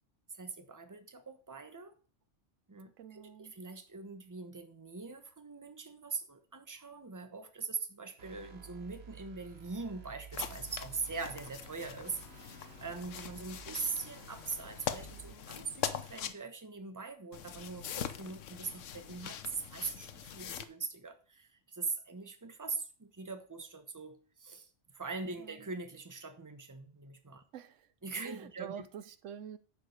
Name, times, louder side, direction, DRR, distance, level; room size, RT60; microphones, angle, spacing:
voice 1, 0.3-2.0 2.7-27.4 28.0-28.9, right 4 dB, 15° right, 1.0 m, -42 dB
voice 2, 3.0-3.5 25.4-25.5 27.5-27.9 28.2-29.6, right 8 dB, 85° right, 1.0 m, -46 dB
sound 1, 8.2-15.3, right 7 dB, 60° right, 1.4 m, -53 dB
sound 2, 10.3-16.3 17.3-20.7, left 9 dB, 85° left, 1.1 m, -42 dB
10.0 x 5.0 x 6.4 m
omnidirectional pair, 1.3 m